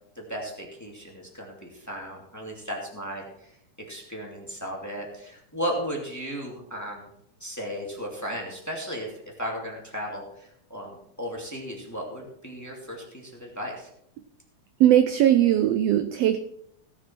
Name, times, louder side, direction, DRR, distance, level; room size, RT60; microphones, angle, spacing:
voice 1, 0.2-3.5 3.9-7.1 7.4-13.9, equal, 5° left, -1 dB, 2.0 m, -35 dB
voice 2, 14.8-16.4, right 12 dB, 80° right, 8 dB, 1.4 m, -19 dB
16.5 x 7.3 x 4.4 m, 0.74 s
omnidirectional pair, 3.5 m